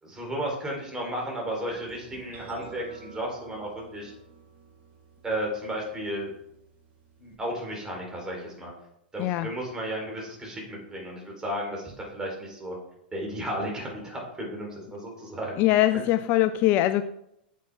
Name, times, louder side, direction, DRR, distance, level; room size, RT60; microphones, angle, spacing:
voice 1, 0.0-4.1 5.2-6.3 7.2-8.7 9.1-12.8 13.1-15.6, right 1 dB, 15° right, -1 dB, 4.2 m, -34 dB
sound 1, 1.7-7.4, right 4 dB, 35° right, 2.6 m, -49 dB
voice 2, 9.2-9.5 15.6-17.0, left 14 dB, 40° left, 12 dB, 0.4 m, -22 dB
9.3 x 7.6 x 3.8 m, 0.77 s
figure-of-eight pair, 100°, 5 cm